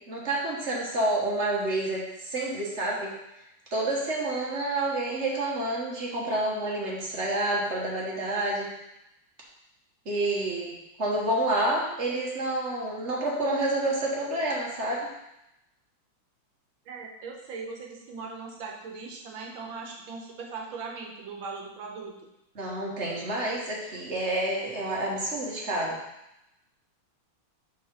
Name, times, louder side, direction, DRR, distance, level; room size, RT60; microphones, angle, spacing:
voice 1, 0.1-3.1 3.7-8.7 10.0-15.1 22.5-26.0, right 1 dB, 40° right, -4 dB, 1.5 m, -29 dB
voice 2, 16.9-22.2, right 4 dB, 75° right, 0 dB, 1.7 m, -39 dB
5.3 x 4.0 x 5.5 m, 0.87 s
omnidirectional pair, 2.2 m